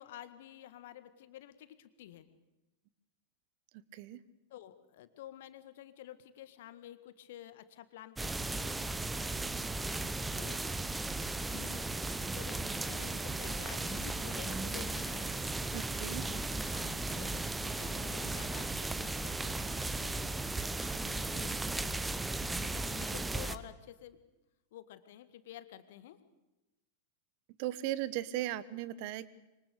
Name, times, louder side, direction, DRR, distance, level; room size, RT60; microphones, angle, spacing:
voice 1, 0.0-2.3 4.5-8.7 10.4-10.7 11.5-15.5 16.3-19.6 20.0-20.4 20.9-21.6 22.4-24.2 24.7-26.2, left 12 dB, 55° left, 12 dB, 1.8 m, -51 dB
sound 1, 8.2-23.6, right 2 dB, 10° right, 1.1 m, -36 dB
voice 2, 15.7-16.2 27.6-29.3, right 14 dB, 45° right, 18 dB, 1.1 m, -37 dB
26.0 x 24.5 x 6.8 m, 1.0 s
figure-of-eight pair, 90°, 0 cm